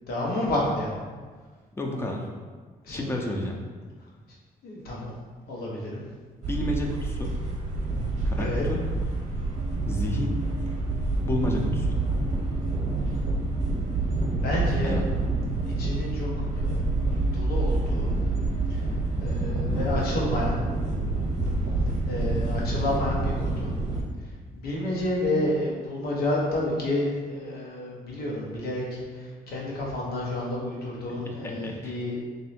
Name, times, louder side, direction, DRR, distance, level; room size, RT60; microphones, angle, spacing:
voice 1, 0.1-0.9 2.8-3.3 4.6-5.1 5.5-6.0 8.4-8.6 14.3-14.9 15.8-16.8 17.3-18.1 18.7-20.6 22.1-23.7 24.5-32.2, left 1 dB, 85° left, -4 dB, 1.1 m, -30 dB
voice 2, 1.7-2.3 2.9-3.6 6.5-7.3 8.2-8.8 9.9-10.4 11.2-12.0 14.8-15.0 31.1-32.0, left 1 dB, 15° left, 1 dB, 0.5 m, -31 dB
sound 1, 6.4-24.0, right 2 dB, 45° right, 0.8 m, -27 dB
sound 2, 9.5-18.9, right 1 dB, 65° right, 0.5 m, -42 dB
3.1 x 2.7 x 4.2 m, 1.5 s
cardioid pair, 130°, 16 cm